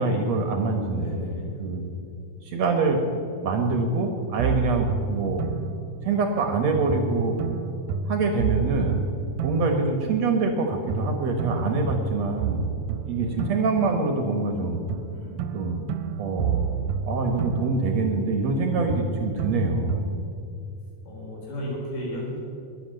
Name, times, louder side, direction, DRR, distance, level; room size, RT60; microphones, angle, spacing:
voice 1, 0.0-1.1 1.6-1.8 2.4-3.0 3.4-5.5 6.0-7.4 8.1-9.0 9.4-12.8 13.1-14.8 15.5-15.9 16.2-16.6 17.0-20.0, right 3 dB, 60° right, 4 dB, 2.0 m, -25 dB
voice 2, 0.9-1.5 13.1-13.5 15.1-15.4 21.0-22.4, left 1 dB, 70° left, -4 dB, 6.0 m, -34 dB
sound 1, 4.4-6.5 6.9-10.6 10.9-14.6 14.9-18.6 18.9-20.5, right 6 dB, 85° right, 2.3 m, -31 dB
21.5 x 8.3 x 6.5 m, 2.6 s
omnidirectional pair, 3.9 m